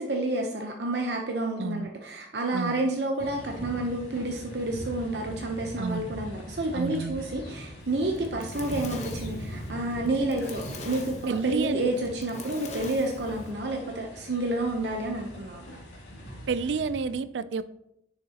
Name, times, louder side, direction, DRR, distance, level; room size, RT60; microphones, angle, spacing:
voice 1, 0.0-11.1 11.4-15.7, right 2 dB, 70° right, 2 dB, 0.8 m, -30 dB
voice 2, 1.6-1.9 2.5-2.8 5.8-6.1 6.7-7.2 11.3-11.8 16.5-17.7, right 5 dB, 85° right, 15 dB, 0.4 m, -30 dB
sound 1, 3.2-17.2, equal, 80° left, 2.4 m, -41 dB
Fire, 8.0-13.5, left 3 dB, 40° left, 1.0 m, -43 dB
10.0 x 6.9 x 2.9 m, 0.81 s
head